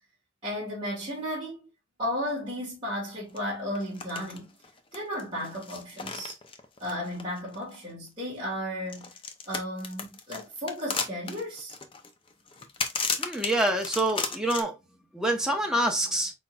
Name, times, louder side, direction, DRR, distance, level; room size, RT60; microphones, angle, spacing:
voice 1, 0.4-1.6 2.0-4.5 4.9-6.4 6.8-9.1 9.5-11.8, equal, 25° right, 2.0 m, -34 dB
sound 1, 3.4-3.5 3.7-4.4 4.6-7.9 8.9-14.6, left 5 dB, 25° left, 0.6 m, -34 dB
voice 2, 13.2-14.8 15.1-16.3, right 1 dB, 5° right, 0.8 m, -26 dB
4.5 x 4.3 x 2.3 m
head